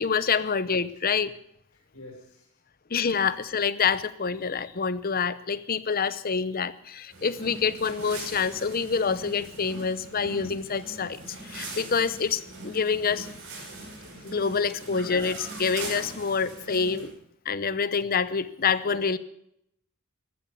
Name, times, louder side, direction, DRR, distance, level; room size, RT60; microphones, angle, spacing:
voice 1, 0.0-1.4 2.9-13.3 14.2-17.1 17.4-19.2, left 5 dB, 45° left, 15 dB, 0.8 m, -27 dB
voice 2, 1.7-2.5 14.6-14.8 18.8-19.0, left 2 dB, 85° left, 0 dB, 6.4 m, -47 dB
sound 1, 7.1-17.1, right 2 dB, 60° right, 6.5 m, -41 dB
14.0 x 14.0 x 7.0 m, 0.75 s
head